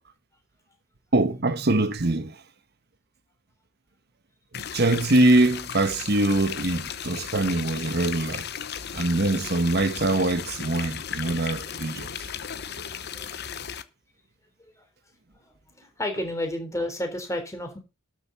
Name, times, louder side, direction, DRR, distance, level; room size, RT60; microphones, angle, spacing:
voice 1, 1.1-2.4 4.5-8.5 8.9-12.3, right 2 dB, 55° right, 1.1 m, -23 dB
sound 1, 4.5-13.8, left 8 dB, 55° left, 0.9 m, -35 dB
voice 2, 15.8-17.8, left 1 dB, 15° left, 3.7 m, -31 dB
12.5 x 6.6 x 5.6 m
head